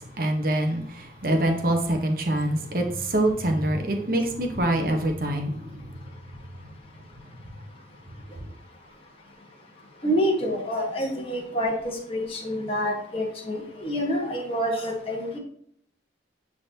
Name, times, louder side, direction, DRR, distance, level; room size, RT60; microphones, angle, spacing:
voice 1, 0.2-5.9, right 1 dB, 50° right, 3 dB, 1.2 m, -25 dB
voice 2, 10.0-15.4, equal, 30° left, -1 dB, 1.6 m, -27 dB
10.0 x 4.0 x 3.0 m, 0.63 s
head